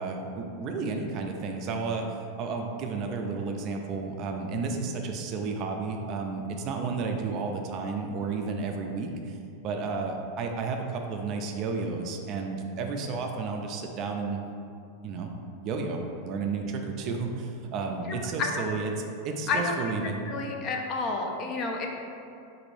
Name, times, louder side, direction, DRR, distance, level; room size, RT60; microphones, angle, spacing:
voice 1, 0.0-9.4 9.6-14.4 15.0-15.3 15.6-18.9 19.2-20.3, right 4 dB, 40° right, 3 dB, 0.3 m, -32 dB
voice 2, 18.1-18.6 19.5-19.9 20.3-21.9, left 3 dB, 35° left, 1 dB, 0.4 m, -30 dB
3.9 x 2.6 x 3.1 m, 2.5 s
supercardioid pair, 145°, 0 cm